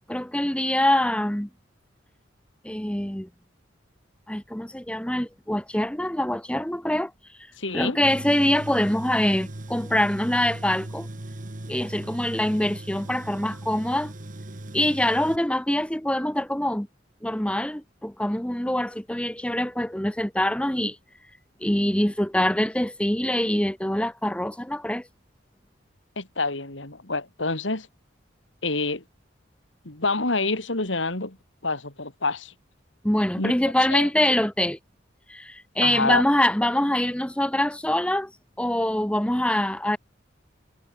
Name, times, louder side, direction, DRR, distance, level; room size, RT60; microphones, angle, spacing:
voice 1, 0.1-1.5 2.6-3.3 4.3-7.1 7.7-11.1 11.7-14.1 14.7-16.9 17.2-21.0 21.6-25.1 33.0-34.8 35.3-38.3 38.6-40.0, left 1 dB, 5° left, 1.1 m, -24 dB
voice 2, 7.6-8.0 26.2-27.9 28.6-29.0 29.8-31.4 31.6-32.5 33.4-33.5 33.9-34.1 35.8-36.2, left 3 dB, 90° left, 3.9 m, -27 dB
Tools, 8.0-15.4, right 1 dB, 45° right, 1.4 m, -38 dB
head